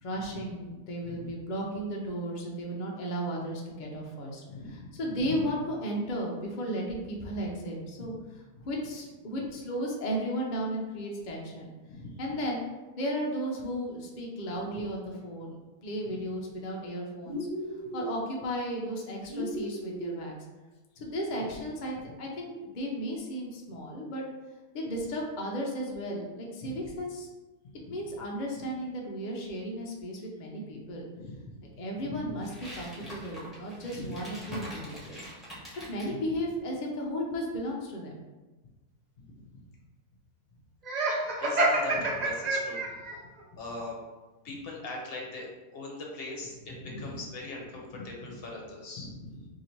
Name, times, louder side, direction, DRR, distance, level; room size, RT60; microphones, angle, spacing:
voice 1, 0.0-4.4 4.7-8.1 8.6-11.7 12.2-12.7 13.0-17.4 17.9-20.3 21.0-24.2 24.7-27.3 27.9-31.0 31.8-35.3 35.9-38.1, equal, 85° left, -1 dB, 0.4 m, -34 dB
voice 2, 4.5-5.4 8.0-8.1 8.6-8.7 11.9-12.3 14.7-14.8 16.0-16.2 26.6-26.8 27.8-28.0 31.2-31.5 32.0-32.4 33.9-34.1 34.4-34.6 36.1-36.2 39.2-39.6 41.0-41.1 41.4-43.2 43.5-44.0 44.4-49.5, left 2 dB, 50° left, -1 dB, 0.8 m, -41 dB
sound 1, 17.2-18.2 19.3-20.2, equal, 45° right, 0.8 m, -35 dB
sound 2, 32.4-36.1, equal, ahead, 0.8 m, -45 dB
Laughter, 40.8-43.2, right 2 dB, 75° right, 0.4 m, -27 dB
2.8 x 2.7 x 4.3 m, 1.2 s
omnidirectional pair, 1.6 m